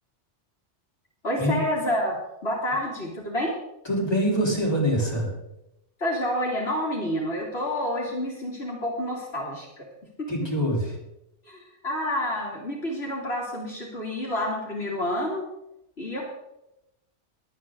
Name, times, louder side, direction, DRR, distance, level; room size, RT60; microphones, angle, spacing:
voice 1, 1.2-2.2 2.4-3.5 6.0-9.9 10.2-10.3 11.4-15.5 16.0-16.2, left 1 dB, 60° left, -3 dB, 2.9 m, -29 dB
voice 2, 3.8-5.3 10.3-11.0, equal, 20° left, -4 dB, 3.9 m, -24 dB
21.5 x 8.8 x 3.8 m, 0.87 s
omnidirectional pair, 1.2 m